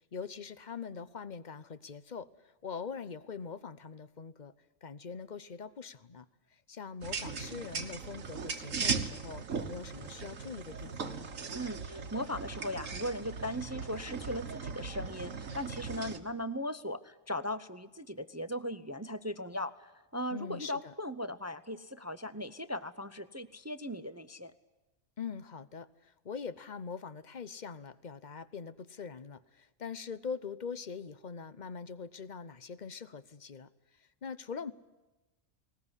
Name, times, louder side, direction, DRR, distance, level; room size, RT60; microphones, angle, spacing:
voice 1, 0.1-2.3 2.6-4.5 4.8-6.3 6.5-11.3 20.3-20.9 25.2-33.7 34.0-34.7, left 5 dB, 40° left, 15 dB, 0.9 m, -43 dB
sound 1, 7.0-16.2, right 5 dB, 75° right, 1.8 m, -38 dB
voice 2, 11.5-24.5, equal, 20° right, 13 dB, 0.5 m, -38 dB
20.5 x 19.5 x 9.8 m, 1.1 s
omnidirectional pair, 1.4 m